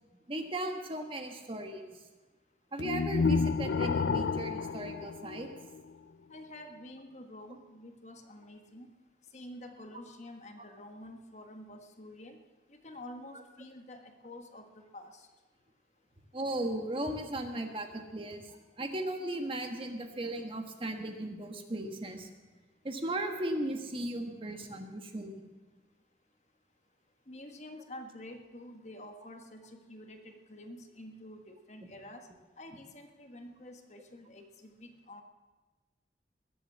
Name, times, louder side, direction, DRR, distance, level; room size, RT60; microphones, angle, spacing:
voice 1, 0.3-2.0 2.7-5.5 16.3-22.3 22.8-25.5, right 1 dB, 30° right, 4 dB, 1.5 m, -37 dB
sound 1, 2.8-5.9, left 4 dB, 90° left, 0.5 m, -30 dB
voice 2, 6.3-8.9 9.3-12.4 12.7-15.3 27.3-32.3 32.6-35.2, left 1 dB, 40° left, 5 dB, 1.5 m, -48 dB
21.0 x 7.9 x 7.5 m, 1.2 s
head